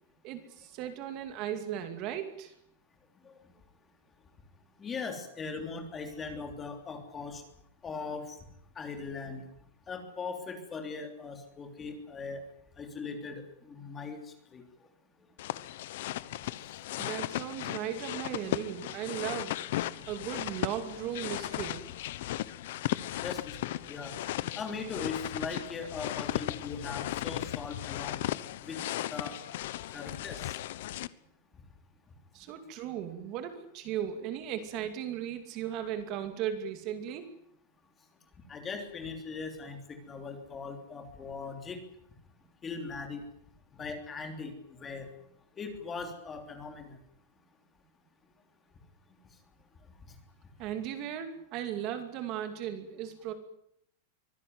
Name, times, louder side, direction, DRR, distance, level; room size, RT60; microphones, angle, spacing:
voice 1, 0.2-2.5 17.0-19.6 20.1-21.8 32.3-37.3 50.6-53.3, right 10 dB, 30° right, 8 dB, 2.4 m, -36 dB
voice 2, 4.8-7.4 7.8-8.4 8.7-9.4 9.9-12.4 12.8-14.3 14.5-14.6 23.2-24.1 24.5-28.3 28.6-28.8 29.1-29.4 29.9-30.5 38.5-41.8 42.6-43.2 43.7-45.1 45.6-47.0, left 4 dB, 15° left, 6 dB, 3.2 m, -39 dB
sound 1, 15.4-31.1, left 14 dB, 55° left, 1.0 m, -36 dB
24.5 x 17.5 x 9.6 m, 0.71 s
supercardioid pair, 180°, 0 cm